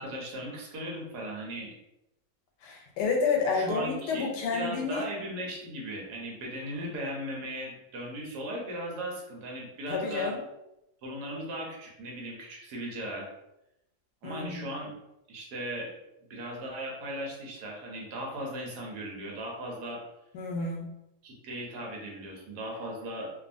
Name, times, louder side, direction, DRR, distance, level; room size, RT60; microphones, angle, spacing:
voice 1, 0.0-1.7 3.5-10.3 11.0-13.3 14.2-14.9 15.3-15.9 16.3-20.0 21.2-23.3, right 1 dB, 75° right, -1 dB, 1.3 m, -37 dB
voice 2, 2.6-5.1 9.9-10.4 14.2-14.6 20.3-21.0, left 4 dB, 90° left, 1 dB, 1.2 m, -30 dB
2.6 x 2.6 x 2.5 m, 0.89 s
omnidirectional pair, 1.7 m